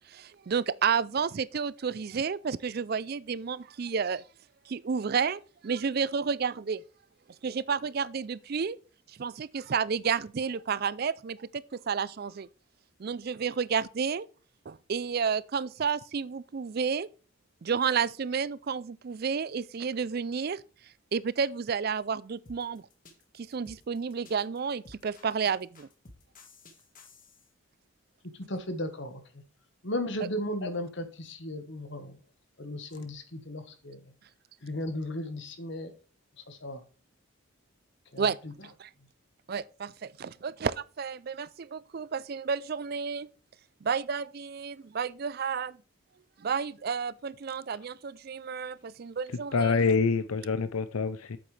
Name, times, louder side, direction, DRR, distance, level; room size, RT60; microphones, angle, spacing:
voice 1, 0.1-4.2 4.7-6.8 7.4-8.8 9.1-12.5 13.0-14.3 14.7-17.1 17.6-20.6 21.1-22.8 23.3-25.9 38.2-38.4 38.8-38.9 39.5-43.3 43.8-45.8 46.4-49.7, right 6 dB, 45° right, 0.4 m, -31 dB
sound 1, 22.5-27.5, left 2 dB, 40° left, 1.6 m, -54 dB
voice 2, 28.2-29.4 29.8-32.2 32.6-34.1 34.6-35.9 36.4-36.8 38.1-38.5, left 1 dB, 55° left, 1.3 m, -36 dB
voice 3, 49.3-51.4, left 4 dB, 90° left, 0.6 m, -26 dB
8.6 x 7.8 x 3.3 m
head